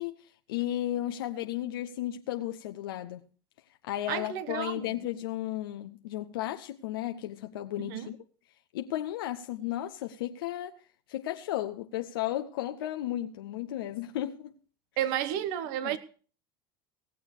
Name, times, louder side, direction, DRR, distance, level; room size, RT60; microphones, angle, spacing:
voice 1, 0.0-3.2 3.8-8.2 8.7-14.5 15.8-16.0, left 13 dB, 80° left, 0.8 m, -34 dB
voice 2, 4.1-4.8 7.8-8.1 15.0-16.0, right 11 dB, 65° right, 1.2 m, -32 dB
18.0 x 7.1 x 6.6 m
hypercardioid pair, 95°, 12 cm